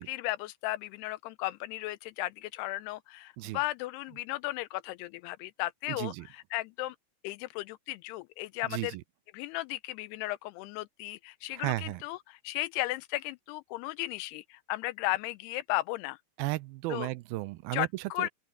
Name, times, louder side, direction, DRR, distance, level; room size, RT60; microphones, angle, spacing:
voice 1, 0.0-7.0 7.2-9.0 9.3-16.2 16.9-17.1 17.7-18.3, left 18 dB, 85° left, 2.6 m, -35 dB
voice 2, 5.9-6.3 8.7-9.0 11.6-12.0 16.4-18.3, right 19 dB, 80° right, 2.3 m, -34 dB
open air
omnidirectional pair, 4.7 m